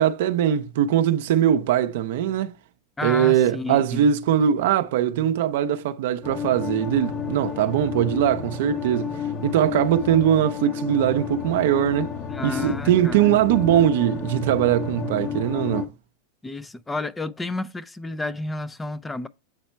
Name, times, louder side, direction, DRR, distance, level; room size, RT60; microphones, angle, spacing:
voice 1, 0.0-2.5 3.0-12.1 12.4-15.9, right 10 dB, 70° right, 0.6 m, -21 dB
voice 2, 3.0-4.1 12.3-13.4 16.4-19.3, left 2 dB, 10° left, 0.5 m, -31 dB
sound 1, 6.2-15.9, left 7 dB, 30° left, 0.9 m, -31 dB
8.1 x 4.2 x 4.4 m
supercardioid pair, 125°, 0 cm